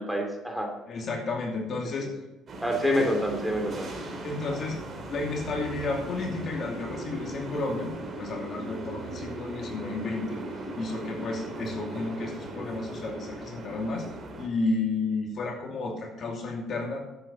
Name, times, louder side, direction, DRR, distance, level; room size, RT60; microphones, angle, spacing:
voice 1, 0.0-0.7 2.0-2.1 2.6-3.9, right 1 dB, 5° right, 2 dB, 3.0 m, -28 dB
voice 2, 0.9-2.1 2.8-3.1 4.2-4.8 5.1-7.9 8.2-10.4 10.8-14.1 14.4-17.0, left 3 dB, 55° left, 1 dB, 2.8 m, -31 dB
sound 1, 2.5-14.5, right 2 dB, 45° right, 3.1 m, -38 dB
12.0 x 8.5 x 5.7 m, 0.99 s
supercardioid pair, 75°, 0 cm